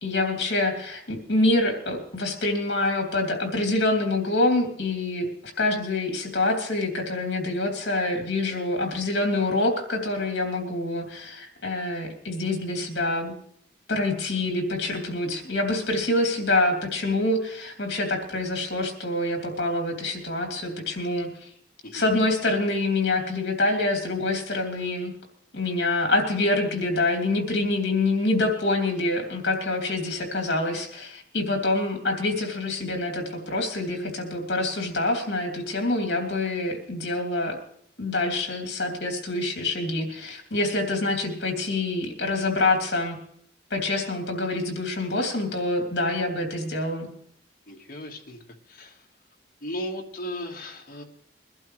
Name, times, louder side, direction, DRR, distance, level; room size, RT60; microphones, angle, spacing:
voice 1, 0.0-5.3 5.6-13.3 13.9-21.5 21.9-25.1 25.5-37.6 38.0-43.2 43.7-47.1, left 2 dB, 65° left, 2 dB, 3.0 m, -26 dB
voice 2, 47.7-49.1 49.6-51.0, equal, 50° left, 1 dB, 1.7 m, -37 dB
22.5 x 11.5 x 3.3 m, 0.65 s
head